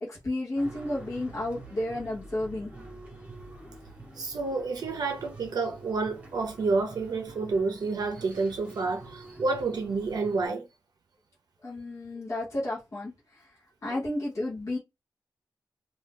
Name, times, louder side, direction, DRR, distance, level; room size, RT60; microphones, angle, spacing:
voice 1, 0.0-2.7 11.6-13.5 13.8-14.8, left 1 dB, 45° left, 1.2 m, -32 dB
sound 1, 0.6-10.5, right 2 dB, 20° right, 1.3 m, -47 dB
voice 2, 4.1-10.7 13.9-14.0, right 3 dB, 65° right, 0.6 m, -29 dB
2.7 x 2.7 x 3.6 m
wide cardioid pair, 175°, 7 cm